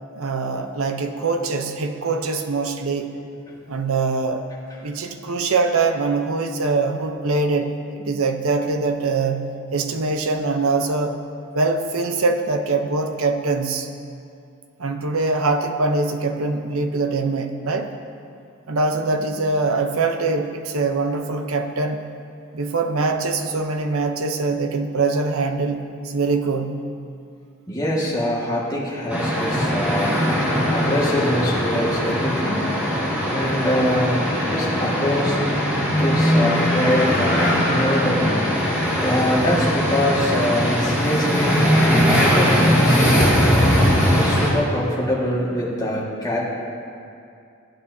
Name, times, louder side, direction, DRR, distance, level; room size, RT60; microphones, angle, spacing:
voice 1, 0.1-3.2 3.7-4.5 4.8-11.2 11.5-13.9 14.8-17.9 18.7-22.0 22.5-26.8, right 3 dB, 75° right, 6 dB, 0.7 m, -23 dB
voice 2, 27.7-32.7 33.3-35.4 36.0-38.5 38.9-41.6 42.1-43.4 44.1-46.4, left 1 dB, 15° left, -6 dB, 1.7 m, -24 dB
sound 1, 29.1-44.5, equal, 5° right, 1.7 m, -20 dB
15.5 x 8.8 x 2.7 m, 2.5 s
head